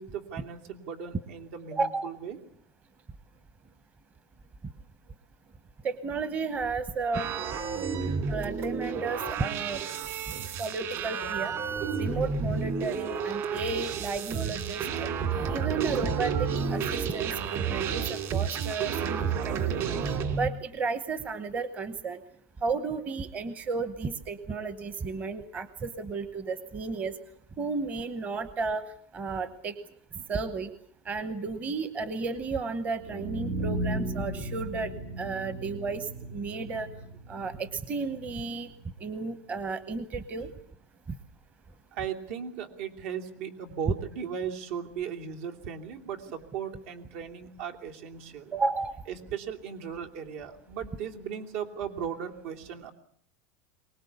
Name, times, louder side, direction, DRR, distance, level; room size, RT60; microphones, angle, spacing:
voice 1, 0.0-2.4 41.9-48.6 49.1-52.9, right 8 dB, 70° right, 3 dB, 2.9 m, -37 dB
voice 2, 1.7-2.1 5.8-7.3 8.3-9.8 10.6-11.5 12.0-15.1 15.4-19.9 20.4-22.2 22.6-27.1 27.6-29.7 30.1-30.7 31.0-36.9 37.3-38.7 39.0-40.5 48.5-49.0, right 4 dB, 20° right, 12 dB, 1.0 m, -33 dB
sound 1, 7.1-20.5, right 6 dB, 40° right, 2.5 m, -31 dB
sound 2, 32.9-38.9, right 1 dB, 85° right, 8.0 m, -36 dB
23.5 x 20.0 x 8.3 m, 0.62 s
supercardioid pair, 160°, 8 cm